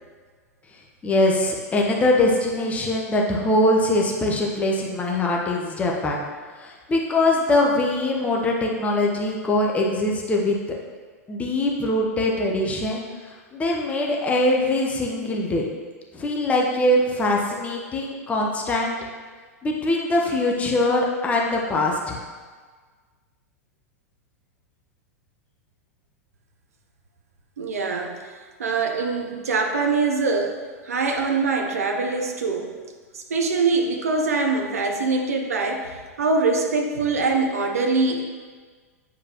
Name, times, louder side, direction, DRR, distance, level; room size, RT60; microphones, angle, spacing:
voice 1, 1.0-6.2 6.6-10.6 11.3-15.6 16.1-19.0 19.6-22.2, left 1 dB, 15° left, -1 dB, 1.0 m, -22 dB
voice 2, 27.6-28.2 28.6-30.6 30.8-32.7 33.1-38.2, right 4 dB, 65° right, 3 dB, 0.8 m, -23 dB
8.9 x 5.0 x 3.0 m, 1.5 s
figure-of-eight pair, 95°, 9 cm